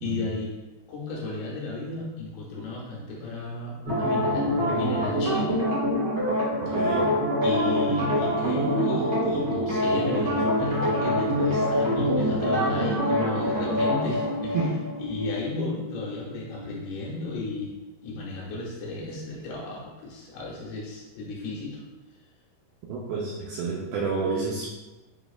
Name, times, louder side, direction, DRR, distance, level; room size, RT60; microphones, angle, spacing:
voice 1, 0.0-0.5 0.9-5.6 6.7-6.8 7.4-14.6 15.0-17.7 18.0-21.8, left 2 dB, 75° left, -4 dB, 2.7 m, -33 dB
sound 1, 3.8-16.9 17.2-17.3, equal, 60° right, 1.2 m, -25 dB
voice 2, 6.7-7.1 14.5-14.8 22.9-24.7, right 4 dB, 85° right, -4 dB, 2.2 m, -29 dB
7.2 x 3.0 x 2.4 m, 1.1 s
omnidirectional pair, 4.8 m